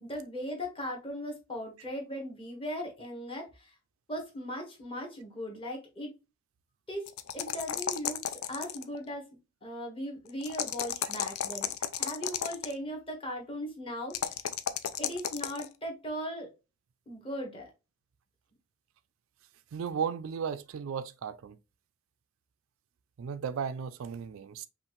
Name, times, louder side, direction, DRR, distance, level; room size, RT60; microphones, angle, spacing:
voice 1, 0.0-3.8 4.1-6.1 6.9-9.2 9.6-14.4 15.0-16.5 17.1-17.7, equal, 25° left, 1.3 m, -38 dB
sound 1, 7.1-9.0 10.4-12.7 14.1-15.7, left 9 dB, 80° left, 0.5 m, -33 dB
voice 2, 19.7-21.6 23.2-24.7, right 7 dB, 65° right, 0.3 m, -35 dB
5.5 x 2.4 x 3.1 m
head